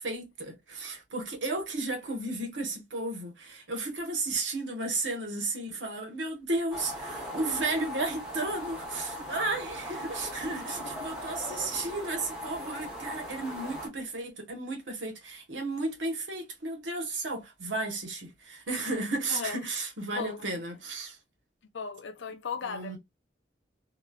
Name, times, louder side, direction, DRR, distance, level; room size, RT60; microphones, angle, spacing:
voice 1, 0.0-21.2 22.7-23.0, right 2 dB, 80° right, 1.1 m, -33 dB
sound 1, 6.7-13.9, equal, 5° right, 1.1 m, -39 dB
voice 2, 10.5-11.1 19.3-20.6 21.7-23.0, left 5 dB, 75° left, 0.5 m, -38 dB
3.0 x 2.3 x 2.3 m
head